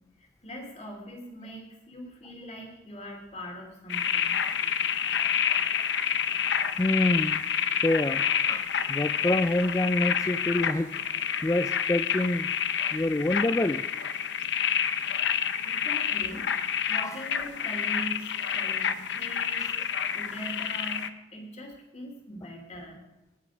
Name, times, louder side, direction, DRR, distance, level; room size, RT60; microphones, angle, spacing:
voice 1, 0.2-4.4 15.2-16.5 16.9-19.7 20.1-23.0, equal, 35° left, 1 dB, 2.9 m, -42 dB
sound 1, 3.9-21.1, left 8 dB, 65° left, 0.7 m, -28 dB
voice 2, 6.8-7.4 7.8-12.5 12.9-13.8 16.9-17.2 19.6-19.7, left 1 dB, 15° left, 10 dB, 0.3 m, -27 dB
19.0 x 6.7 x 5.0 m, 0.99 s
head